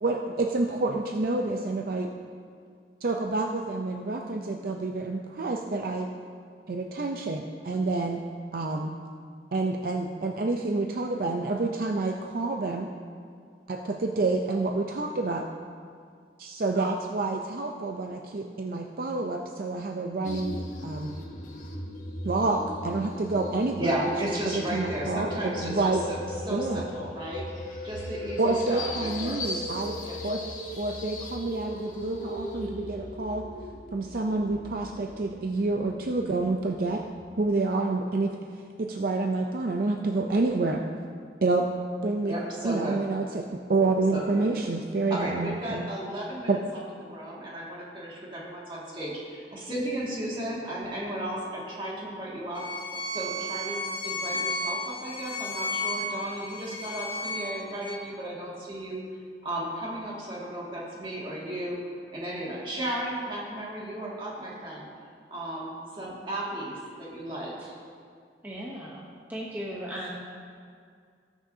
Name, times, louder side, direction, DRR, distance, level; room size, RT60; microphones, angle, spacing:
voice 1, 0.0-2.1 3.0-6.1 6.7-8.2 8.5-8.9 9.5-12.9 13.7-15.4 16.4-21.2 22.2-26.0 26.5-26.8 28.4-29.9 30.2-30.4 30.8-33.4 33.9-37.0 37.4-38.3 38.8-40.8 41.4-41.7 42.0-42.3 42.6-45.8 46.5-46.6, right 3 dB, 55° right, 2 dB, 0.5 m, -28 dB
sound 1, 20.2-37.4, left 1 dB, 45° left, 1.1 m, -38 dB
voice 2, 23.8-26.2 26.5-27.4 27.8-29.5 30.0-30.2 42.3-43.0 44.1-44.5 45.1-46.5 47.0-52.6 53.1-59.0 59.4-61.8 62.1-64.9 65.3-67.7, right 1 dB, 30° right, -6 dB, 2.0 m, -34 dB
Bowed string instrument, 52.5-58.0, left 1 dB, 25° left, 0.9 m, -33 dB
voice 3, 68.4-69.0 69.3-70.2, equal, 10° right, -5 dB, 0.9 m, -36 dB
18.5 x 6.3 x 2.7 m, 2.2 s
head